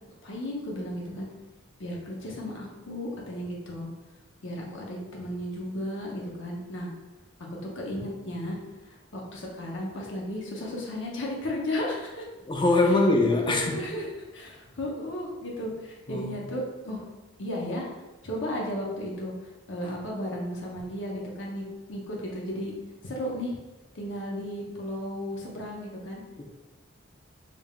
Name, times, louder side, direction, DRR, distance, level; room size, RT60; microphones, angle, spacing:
voice 1, 0.2-1.3 1.8-3.9 4.4-6.9 7.7-8.6 8.9-12.2 12.8-12.9 13.2-14.1 14.3-17.0 17.4-17.9 18.2-19.3 19.7-22.8 23.0-23.6 23.9-26.2, left 1 dB, 65° left, -3 dB, 0.8 m, -34 dB
voice 2, 12.5-13.8 16.1-16.4 26.4-26.5, left 2 dB, 25° left, 2 dB, 0.4 m, -23 dB
3.6 x 3.4 x 2.4 m, 1.1 s
head